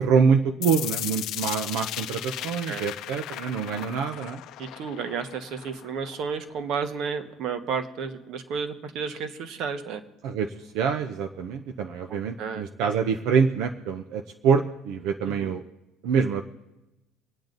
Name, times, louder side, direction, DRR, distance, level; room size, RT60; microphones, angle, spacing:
voice 1, 0.0-4.4 10.2-15.6 16.0-16.4, right 6 dB, 75° right, 5 dB, 0.8 m, -25 dB
sound 1, 0.6-6.6, left 13 dB, 55° left, 0.6 m, -36 dB
voice 2, 2.4-2.8 4.6-10.0 12.1-12.6 15.2-15.5, right 6 dB, 55° right, 8 dB, 1.3 m, -32 dB
25.5 x 9.0 x 4.0 m, 0.99 s
cardioid pair, 160°, 0 cm